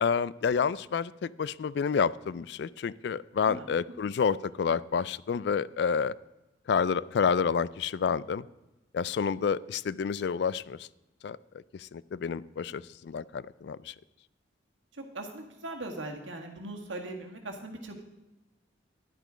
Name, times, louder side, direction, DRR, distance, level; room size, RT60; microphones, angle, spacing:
voice 1, 0.0-6.1 6.7-8.4 8.9-10.9 11.2-11.4 11.7-13.9, left 6 dB, 60° left, 20 dB, 0.3 m, -29 dB
voice 2, 14.9-18.0, right 2 dB, 85° right, 3 dB, 1.8 m, -40 dB
10.5 x 9.1 x 5.0 m, 1.0 s
head